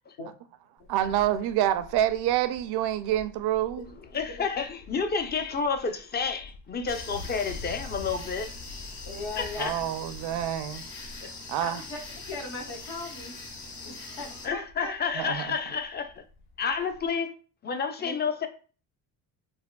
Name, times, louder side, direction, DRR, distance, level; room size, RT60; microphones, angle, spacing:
Wind, 0.8-17.1, left 3 dB, 90° left, 0.6 m, -48 dB
voice 1, 0.9-3.8 9.6-10.8 11.5-11.8 15.1-15.5, right 12 dB, 60° right, 0.5 m, -27 dB
voice 2, 4.1-8.5 9.4-9.8 11.2-11.3 14.4-16.2 16.6-17.3 17.6-18.5, left 5 dB, 25° left, 0.4 m, -30 dB
sound 1, 6.9-14.5, left 3 dB, 55° left, 1.1 m, -42 dB
voice 3, 9.0-9.7 11.6-12.0 12.3-13.3 13.8-15.2 16.8-16.9 18.0-18.1, left 2 dB, 70° left, 1.3 m, -38 dB
3.4 x 2.2 x 2.2 m
supercardioid pair, 75°, 44 cm